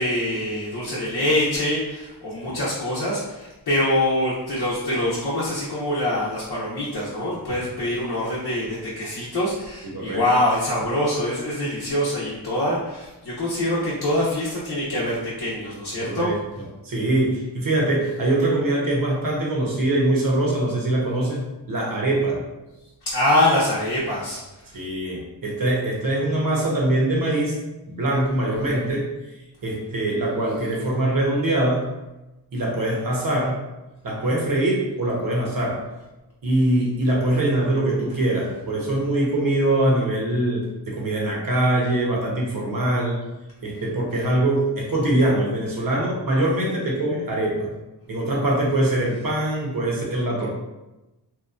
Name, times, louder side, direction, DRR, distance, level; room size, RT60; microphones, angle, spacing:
voice 1, 0.0-16.3 23.1-24.8, left 1 dB, 65° left, -7 dB, 0.8 m, -24 dB
voice 2, 9.8-10.2 16.0-16.3 16.8-21.4 21.7-22.4 24.7-27.6 27.9-29.1 29.6-31.9 32.5-33.6 34.0-35.8 36.4-43.2 43.6-47.7 48.1-50.5, right 1 dB, 55° right, -2 dB, 0.9 m, -23 dB
2.8 x 2.3 x 2.4 m, 1.0 s
cardioid pair, 50°, 42 cm